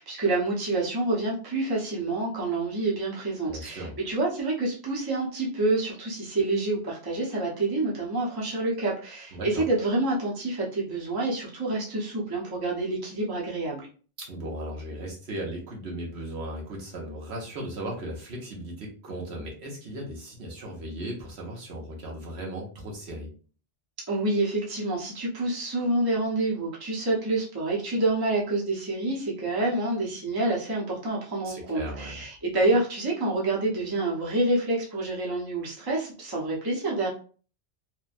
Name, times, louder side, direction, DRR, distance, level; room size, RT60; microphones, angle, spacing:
voice 1, 0.0-13.9 24.1-37.1, right 2 dB, 20° right, -4 dB, 0.7 m, -27 dB
voice 2, 3.5-4.0 9.3-9.6 14.2-23.3 31.4-32.2, right 1 dB, 65° right, -2 dB, 1.1 m, -37 dB
3.1 x 2.2 x 2.5 m, 0.39 s
omnidirectional pair, 1.2 m